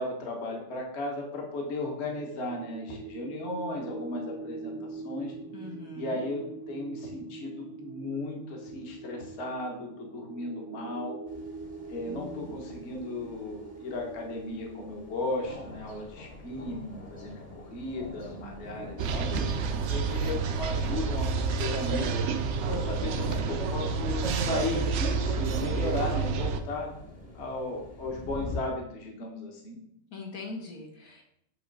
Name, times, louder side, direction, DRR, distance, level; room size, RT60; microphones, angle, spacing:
voice 1, 0.0-5.3 6.0-11.2 11.9-19.3 19.9-22.1 22.6-26.9 27.3-29.8, left 2 dB, 50° left, 0 dB, 1.3 m, -35 dB
sound 1, 1.6-16.5, right 4 dB, 80° right, 1.2 m, -43 dB
voice 2, 5.5-6.2 12.1-12.5 30.1-31.2, left 3 dB, 75° left, 0 dB, 1.8 m, -42 dB
sound 2, 11.3-28.6, left 1 dB, 30° left, 1.0 m, -44 dB
sound 3, 19.0-26.6, right 5 dB, 65° right, 0.8 m, -29 dB
7.8 x 3.1 x 5.2 m, 0.75 s
omnidirectional pair, 1.5 m